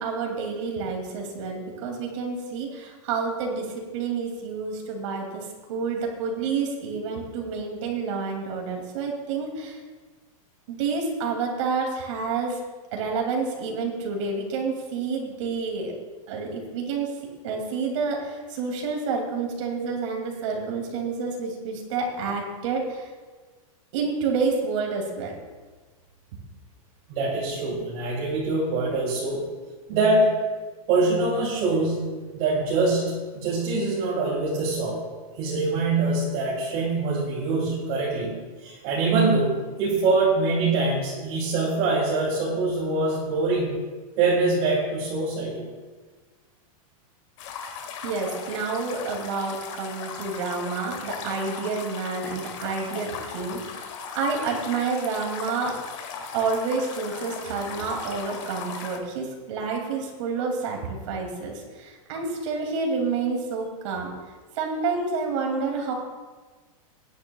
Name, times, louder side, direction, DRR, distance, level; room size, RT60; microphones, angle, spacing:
voice 1, 0.0-9.8 10.7-12.6 12.9-15.9 16.3-17.2 17.4-23.1 23.9-25.4 48.0-55.8 56.3-64.1 64.6-65.9, right 4 dB, 60° right, 1 dB, 2.5 m, -29 dB
voice 2, 27.1-29.4 29.9-30.3 30.9-35.0 35.4-38.3 38.6-43.7 44.2-45.7, right 3 dB, 40° right, -5 dB, 2.7 m, -24 dB
sound 1, 47.4-59.0, left 6 dB, 60° left, 1.8 m, -38 dB
19.0 x 10.0 x 2.3 m, 1.3 s
supercardioid pair, 165°, 18 cm